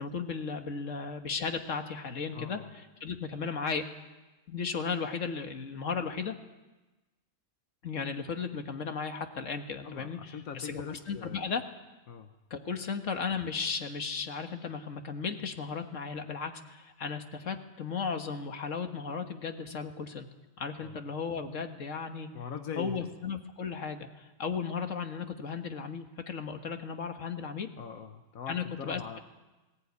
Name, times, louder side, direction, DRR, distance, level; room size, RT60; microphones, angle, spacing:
voice 1, 0.0-2.6 3.0-3.8 4.5-6.4 7.8-10.2 10.5-11.6 12.5-20.3 20.6-22.3 22.8-27.7 28.5-29.0, left 5 dB, 70° left, 6 dB, 1.9 m, -35 dB
voice 2, 2.3-2.7 9.8-11.6 12.1-12.3 20.8-21.0 22.3-23.1 27.8-29.2, left 7 dB, 90° left, 7 dB, 1.5 m, -42 dB
20.5 x 17.5 x 9.6 m, 1.1 s
omnidirectional pair, 1.4 m